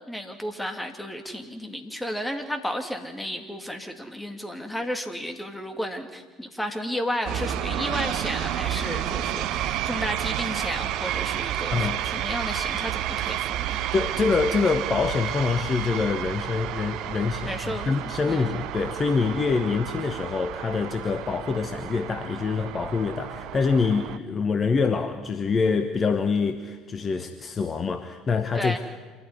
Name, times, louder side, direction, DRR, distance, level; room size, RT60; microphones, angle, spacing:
voice 1, 0.1-13.8 17.4-18.6 28.5-28.8, equal, 5° left, 5 dB, 2.9 m, -33 dB
sound 1, 7.3-24.2, right 12 dB, 55° right, 0.8 m, -31 dB
voice 2, 11.7-12.0 13.9-28.8, left 4 dB, 30° left, 8 dB, 1.3 m, -25 dB
26.5 x 14.0 x 9.7 m, 1.4 s
figure-of-eight pair, 60°, 0 cm